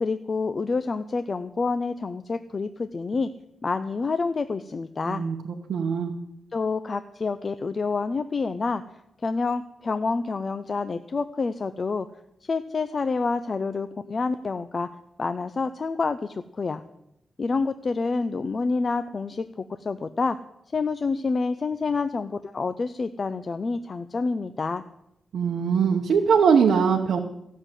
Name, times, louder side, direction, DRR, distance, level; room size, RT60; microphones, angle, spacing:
voice 1, 0.0-3.3 3.6-5.2 6.5-8.8 9.2-12.1 12.4-14.9 15.2-16.8 17.4-20.4 20.7-24.8, left 4 dB, 35° left, 10 dB, 0.5 m, -28 dB
voice 2, 5.1-6.1 25.3-27.2, right 6 dB, 70° right, 1 dB, 1.0 m, -21 dB
14.5 x 6.4 x 9.0 m, 0.83 s
wide cardioid pair, 165°, 0 cm